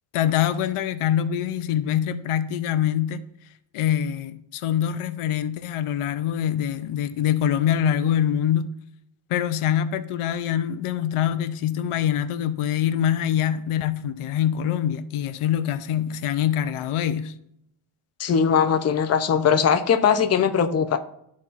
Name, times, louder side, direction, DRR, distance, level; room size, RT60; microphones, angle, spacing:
voice 1, 0.1-3.2 3.7-8.7 9.3-17.3, left 10 dB, 90° left, 0.6 m, -24 dB
voice 2, 18.2-21.0, left 7 dB, 30° left, 0.5 m, -20 dB
12.5 x 4.2 x 2.4 m
cardioid pair, 115°, 49 cm